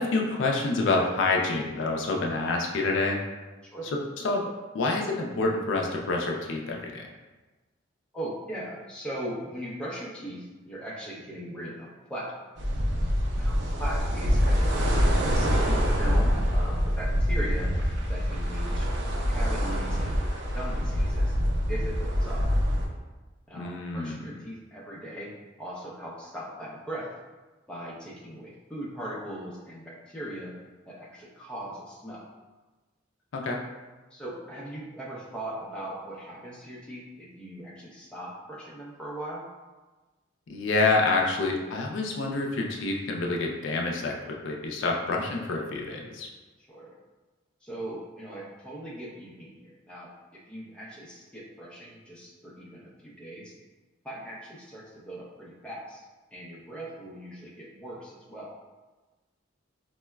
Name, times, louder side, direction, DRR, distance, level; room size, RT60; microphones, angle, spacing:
voice 1, 0.0-3.2 4.2-4.4 4.7-7.1 23.5-24.3 33.3-33.6 40.5-46.3, left 3 dB, 70° left, 1 dB, 0.4 m, -27 dB
voice 2, 8.1-12.3 13.4-15.0 15.3-17.7 18.1-18.9 19.2-20.3 20.5-21.3 21.7-22.4 23.5-25.3 25.6-27.1 27.7-30.5 30.9-32.2 34.1-39.4 46.6-47.0 47.6-53.5 54.0-56.1 56.3-58.5, right 1 dB, 5° left, -5 dB, 0.5 m, -39 dB
sound 1, 12.6-22.9, equal, 60° right, 0.4 m, -25 dB
4.5 x 2.0 x 2.2 m, 1.2 s
head